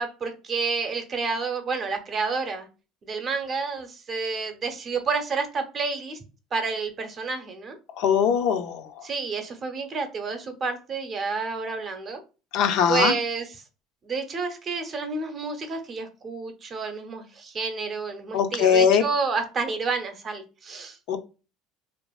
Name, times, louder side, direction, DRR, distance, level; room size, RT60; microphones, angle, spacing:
voice 1, 0.0-2.7 3.1-6.2 6.5-7.8 9.0-12.2 12.9-13.6 14.0-21.2, right 4 dB, 35° right, 6 dB, 0.6 m, -29 dB
voice 2, 8.0-8.8 12.5-13.1 18.3-19.0 21.1-21.2, left 7 dB, 70° left, 7 dB, 0.4 m, -20 dB
2.7 x 2.4 x 2.3 m, 0.32 s
supercardioid pair, 120°, 0 cm